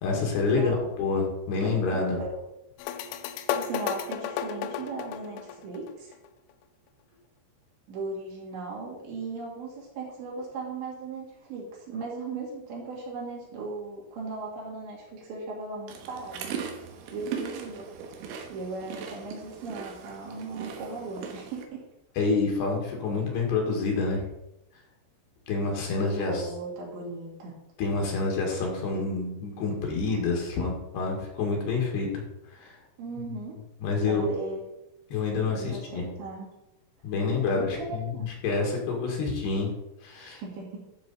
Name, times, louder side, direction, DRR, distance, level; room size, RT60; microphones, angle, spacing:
voice 1, 0.0-2.2 22.2-24.2 25.5-26.4 27.8-32.8 33.8-34.3 35.1-36.0 37.0-39.7 40.0-40.4, left 4 dB, 65° left, 0 dB, 3.6 m, -28 dB
voice 2, 1.6-2.4 3.6-6.1 7.9-16.5 17.1-18.2 18.5-21.8 26.0-27.5 33.0-33.6 34.1-34.6 35.5-36.5 37.4-38.3 40.4-40.8, right 3 dB, 65° right, -3 dB, 4.7 m, -37 dB
sound 1, 2.8-6.3, left 9 dB, 85° left, 3.0 m, -33 dB
sound 2, 15.9-21.7, right 7 dB, 90° right, 3.7 m, -39 dB
12.0 x 6.7 x 4.1 m, 0.88 s
omnidirectional pair, 5.6 m